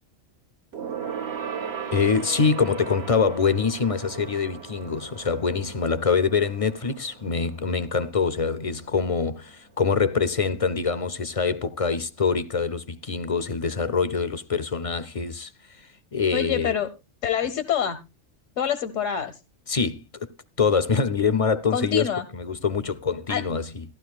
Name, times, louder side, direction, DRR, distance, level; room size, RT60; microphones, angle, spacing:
Gong, 0.7-10.5 10.8-11.1 11.4-11.5, right 7 dB, 60° right, 1.3 m, -38 dB
voice 1, 1.9-15.5 16.1-16.7 19.7-20.3 20.6-23.8, left 5 dB, 40° left, 0.5 m, -24 dB
voice 2, 16.3-16.9 17.2-18.0 18.6-19.4 21.7-22.3 23.3-23.4, left 8 dB, 90° left, 1.3 m, -26 dB
15.0 x 12.0 x 2.3 m
omnidirectional pair, 1.3 m